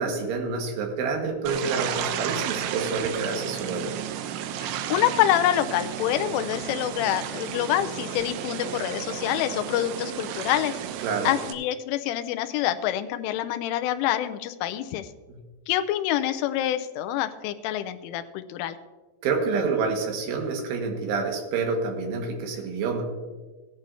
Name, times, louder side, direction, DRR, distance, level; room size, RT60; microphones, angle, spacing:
voice 1, 0.0-3.9 11.0-11.3 15.3-15.4 19.2-23.0, right 4 dB, 70° right, 2 dB, 3.9 m, -28 dB
sound 1, 1.5-11.5, right 10 dB, 85° right, 2.5 m, -33 dB
voice 2, 4.6-10.8 11.2-15.1 15.7-18.8, left 12 dB, 80° left, 9 dB, 3.0 m, -26 dB
17.0 x 10.5 x 2.7 m, 1.3 s
omnidirectional pair, 5.9 m